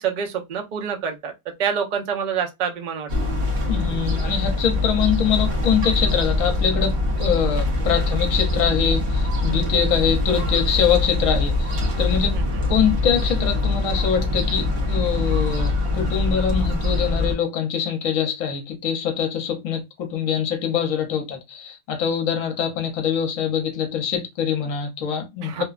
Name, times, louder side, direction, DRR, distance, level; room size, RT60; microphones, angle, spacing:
voice 1, 0.0-1.3 1.6-3.1 12.3-12.6 25.4-25.6, right 7 dB, 80° right, 0.4 m, -26 dB
sound 1, 3.1-17.3, left 2 dB, 50° right, 0.9 m, -23 dB
voice 2, 3.6-12.4 12.7-25.6, left 8 dB, 65° left, 1.1 m, -24 dB
3.0 x 2.2 x 2.3 m
omnidirectional pair, 1.5 m